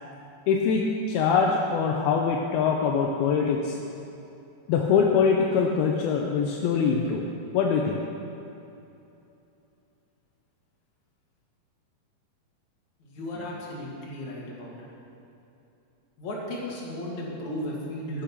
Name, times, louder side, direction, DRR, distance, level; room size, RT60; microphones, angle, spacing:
voice 1, 0.5-3.8 4.7-7.2 7.5-8.0, left 6 dB, 80° left, 1 dB, 2.6 m, -23 dB
voice 2, 13.0-14.9 16.2-18.2, left 1 dB, 50° left, -4 dB, 3.3 m, -35 dB
13.5 x 8.6 x 6.0 m, 2.8 s
omnidirectional pair, 4.4 m